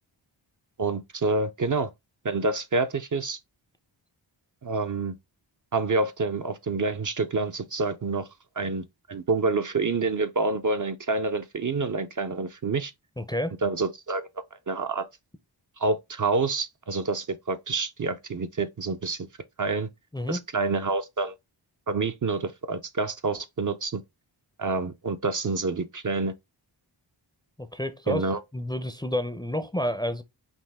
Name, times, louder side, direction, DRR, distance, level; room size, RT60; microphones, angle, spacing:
voice 1, 0.8-1.9 2.2-3.4 4.6-5.1 5.7-8.3 8.6-12.9 13.6-14.3 14.7-15.1 15.8-19.3 19.6-19.9 20.3-21.4 21.9-24.0 24.6-26.3 28.1-28.4, right 3 dB, 40° right, 0.6 m, -27 dB
voice 2, 13.2-13.6 20.1-20.4 27.6-30.2, equal, 10° left, 0.5 m, -30 dB
5.4 x 2.6 x 3.5 m
cardioid pair, 50°, 48 cm